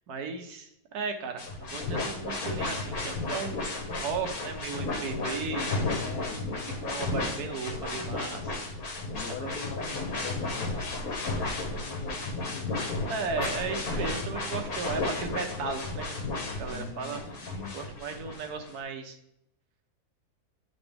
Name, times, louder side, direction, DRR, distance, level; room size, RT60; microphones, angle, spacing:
voice 1, 0.0-5.7 6.8-8.5 9.4-9.5 13.1-16.2 16.6-17.2 17.7-19.2, right 5 dB, 70° right, 5 dB, 1.3 m, -36 dB
sound 1, 1.4-18.7, left 2 dB, 60° left, 1.6 m, -33 dB
voice 2, 5.8-7.2 9.1-13.2 16.7-17.8, left 5 dB, 75° left, 7 dB, 1.3 m, -43 dB
10.0 x 4.0 x 3.5 m, 0.78 s
omnidirectional pair, 1.8 m